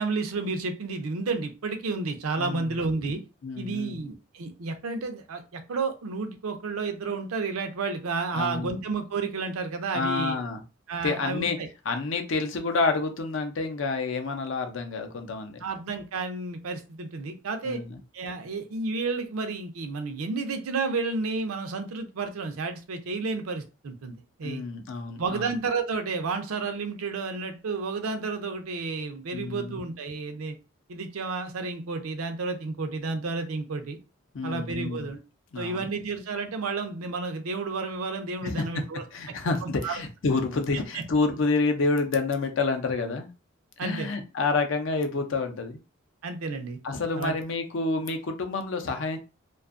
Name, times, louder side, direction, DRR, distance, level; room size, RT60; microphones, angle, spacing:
voice 1, 0.0-3.2 3.6-10.4 10.9-11.7 15.6-17.8 18.1-24.6 25.2-30.5 30.9-34.0 34.4-35.2 35.6-39.0 39.6-40.0 40.9-41.0 43.8-44.1 46.2-46.8 47.2-47.4, right 4 dB, 85° right, 7 dB, 0.5 m, -31 dB
voice 2, 2.4-2.7 3.4-4.0 8.3-8.8 9.9-10.6 11.0-11.6 11.9-15.6 17.6-18.0 24.4-25.5 29.3-29.8 34.3-35.1 35.5-35.9 38.4-38.8 39.1-43.3 43.8-45.8 46.8-49.2, left 3 dB, 65° left, 6 dB, 0.5 m, -28 dB
2.6 x 2.3 x 2.4 m, 0.30 s
head